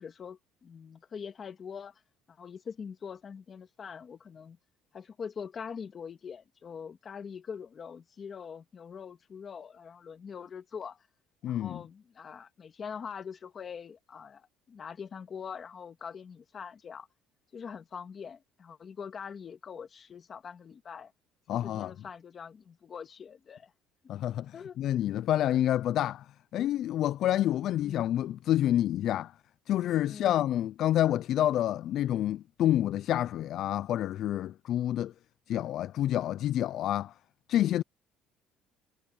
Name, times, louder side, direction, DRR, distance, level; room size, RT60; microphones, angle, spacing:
voice 1, 0.0-2.0 2.3-4.6 4.9-11.0 11.5-17.1 17.5-21.1 21.5-23.7 24.5-24.8 27.8-28.1 30.1-30.4, left 6 dB, 30° left, 1.8 m, -43 dB
voice 2, 11.4-11.8 21.5-21.9 24.1-29.3 29.7-35.1 35.5-37.1 37.5-37.8, left 12 dB, 50° left, 0.3 m, -28 dB
cardioid pair, 170°, 0 cm